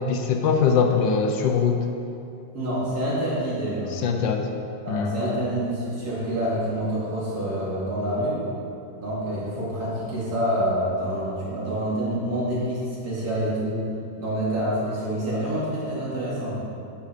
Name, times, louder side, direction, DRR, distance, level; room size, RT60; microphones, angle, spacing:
voice 1, 0.0-1.8 3.9-4.5 4.9-5.2, left 6 dB, 80° left, 4 dB, 1.5 m, -22 dB
voice 2, 2.5-3.9 4.8-8.4 9.0-13.8 14.2-16.6, right 1 dB, 55° right, -8 dB, 2.9 m, -27 dB
8.0 x 7.8 x 5.1 m, 2.7 s
omnidirectional pair, 2.0 m